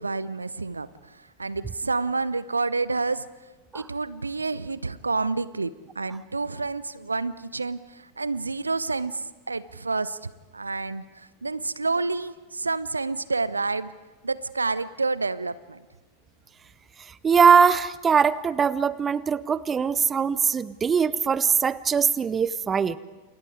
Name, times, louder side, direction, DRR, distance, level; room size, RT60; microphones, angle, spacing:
voice 1, 0.0-3.3 3.7-13.9 14.2-15.8, right 3 dB, 80° right, 18 dB, 0.7 m, -29 dB
voice 2, 17.2-23.0, right 6 dB, 20° right, 19 dB, 0.7 m, -21 dB
29.5 x 28.5 x 4.9 m, 1.2 s
figure-of-eight pair, 90°, 0 cm